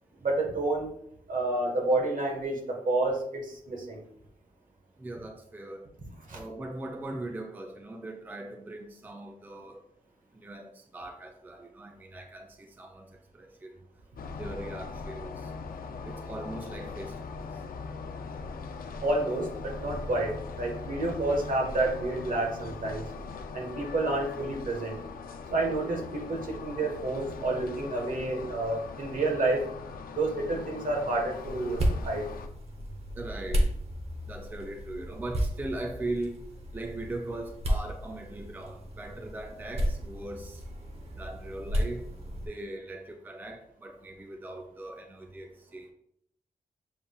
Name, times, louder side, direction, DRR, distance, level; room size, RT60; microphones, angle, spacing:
voice 1, 0.2-0.9 1.3-4.0 6.3-6.4 19.0-23.0 23.5-25.0 25.5-29.6 30.2-32.3, right 2 dB, 65° right, 1.2 m, -29 dB
voice 2, 5.0-5.9 6.3-9.8 10.3-13.7 14.4-15.5 16.0-17.4 33.2-33.7 34.3-36.5 36.7-40.6 41.2-42.0 42.5-45.9, right 2 dB, 10° right, 0.4 m, -40 dB
sound 1, 14.2-32.5, left 4 dB, 80° left, 0.4 m, -40 dB
sound 2, 31.3-42.5, equal, 45° right, 0.9 m, -33 dB
7.1 x 3.3 x 2.3 m
wide cardioid pair, 110°, 15 cm